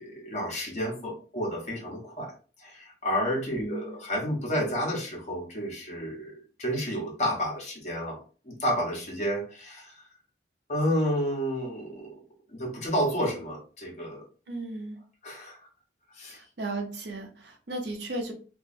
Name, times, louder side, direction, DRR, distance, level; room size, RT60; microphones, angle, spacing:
voice 1, 0.0-2.3 2.6-6.3 6.6-8.2 8.4-10.0 10.7-12.1 12.5-14.2 15.2-15.6 16.2-16.4, equal, 40° left, -2 dB, 1.2 m, -30 dB
voice 2, 3.5-4.0 14.5-15.0 16.3-18.3, right 2 dB, 75° right, 3 dB, 0.8 m, -35 dB
3.1 x 2.7 x 2.6 m, 0.37 s
head